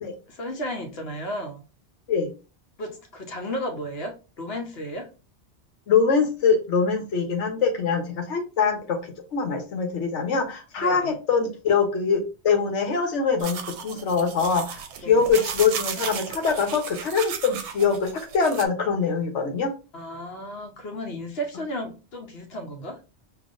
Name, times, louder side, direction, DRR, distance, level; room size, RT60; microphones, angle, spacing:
voice 1, 0.3-1.6 2.8-5.1 10.8-11.1 15.0-15.4 19.9-23.0, equal, 60° left, 3 dB, 1.1 m, -34 dB
voice 2, 5.9-9.0 9.3-19.7, left 5 dB, 85° left, 5 dB, 1.2 m, -23 dB
sound 1, 13.4-18.6, right 7 dB, 80° right, 0.9 m, -34 dB
5.2 x 2.7 x 2.5 m, 0.32 s
omnidirectional pair, 1.2 m